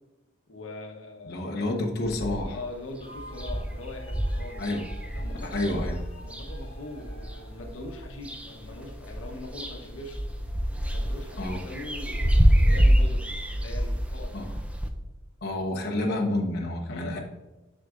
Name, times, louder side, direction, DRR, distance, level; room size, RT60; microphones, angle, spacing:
voice 1, 0.5-1.8 2.4-4.6 5.1-5.8 6.2-10.2 10.9-13.3 13.5-14.4 16.9-17.2, left 2 dB, 90° left, 1 dB, 1.0 m, -41 dB
voice 2, 1.3-2.5 4.6-4.9 5.4-6.0 11.4-11.6 14.3-14.5 15.4-17.2, left 1 dB, 55° left, -1 dB, 1.0 m, -29 dB
sound 1, 2.0-2.6 3.0-3.1 3.3-7.4 7.9-8.7 9.0-14.9, equal, 5° right, 0.5 m, -26 dB
sound 2, 3.0-13.1, equal, 30° left, 1.2 m, -45 dB
6.5 x 6.1 x 2.5 m, 1.1 s
head